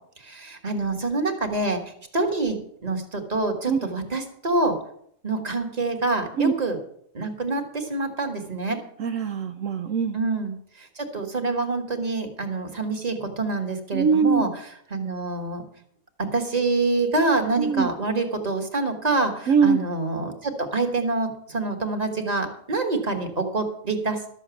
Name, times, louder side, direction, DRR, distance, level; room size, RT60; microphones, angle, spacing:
voice 1, 0.2-1.8 2.1-4.8 5.2-6.8 7.1-8.8 10.1-14.5 14.9-15.6 16.2-24.3, right 3 dB, 30° right, 4 dB, 1.7 m, -26 dB
voice 2, 9.0-10.2 13.9-14.5 17.6-17.9 19.5-19.8, right 6 dB, 70° right, 6 dB, 1.1 m, -22 dB
12.5 x 7.4 x 7.0 m, 0.67 s
omnidirectional pair, 1.4 m